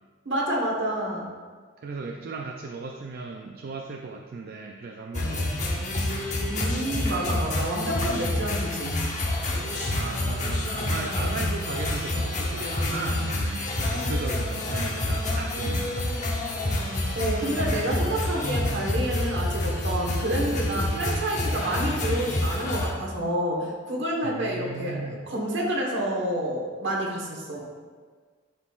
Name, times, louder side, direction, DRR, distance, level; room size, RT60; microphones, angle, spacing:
voice 1, 0.2-1.3 6.5-9.0 17.1-27.6, right 1 dB, 65° right, -1 dB, 1.3 m, -28 dB
voice 2, 1.8-5.6 9.9-16.1 24.2-25.3, right 3 dB, 50° right, 3 dB, 0.4 m, -37 dB
sound 1, 5.1-22.9, left 1 dB, 40° left, 0.9 m, -28 dB
10.5 x 4.0 x 2.4 m, 1.5 s
head